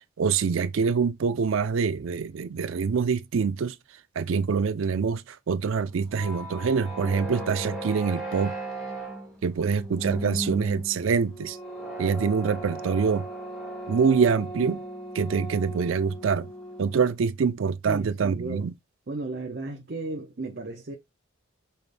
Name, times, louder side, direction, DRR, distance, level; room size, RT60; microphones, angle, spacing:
voice 1, 0.2-3.7 4.2-8.5 9.4-11.6 12.0-13.2 13.9-14.8 15.1-16.5 16.8-18.7, right 5 dB, 85° right, 0.4 m, -25 dB
sound 1, 5.9-17.1, right 1 dB, ahead, 1.1 m, -37 dB
voice 2, 17.8-18.7 19.1-21.0, right 2 dB, 55° right, 0.7 m, -34 dB
5.6 x 2.5 x 3.3 m
head